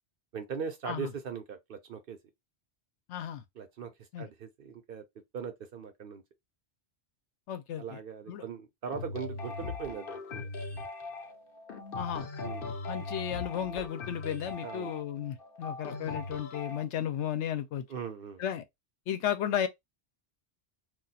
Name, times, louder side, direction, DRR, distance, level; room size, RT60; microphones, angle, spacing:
voice 1, 0.3-2.2 3.6-5.0 5.3-6.2 7.8-10.5 12.4-12.7 14.6-14.9 17.9-18.4, right 6 dB, 60° right, 0.8 m, -40 dB
voice 2, 3.1-3.4 4.1-4.3 7.5-8.0 8.3-8.4 11.9-12.3 12.9-17.8 18.4-18.6 19.1-19.7, left 10 dB, 80° left, 0.9 m, -34 dB
sound 1, 8.9-16.8, left 3 dB, 60° left, 0.8 m, -39 dB
2.4 x 2.4 x 4.0 m
omnidirectional pair, 1.2 m